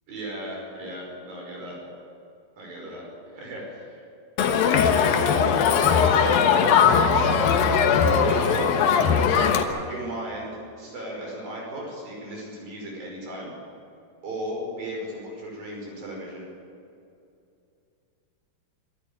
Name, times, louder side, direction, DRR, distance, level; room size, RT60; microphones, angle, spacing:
voice 1, 0.1-1.8 2.6-4.0 4.6-7.3 8.0-8.7 9.7-13.5 14.2-16.5, right 1 dB, 60° right, -2 dB, 7.2 m, -36 dB
Crowd, 4.4-9.6, left 6 dB, 70° left, 2.8 m, -19 dB
24.5 x 13.0 x 8.6 m, 2.6 s
omnidirectional pair, 4.7 m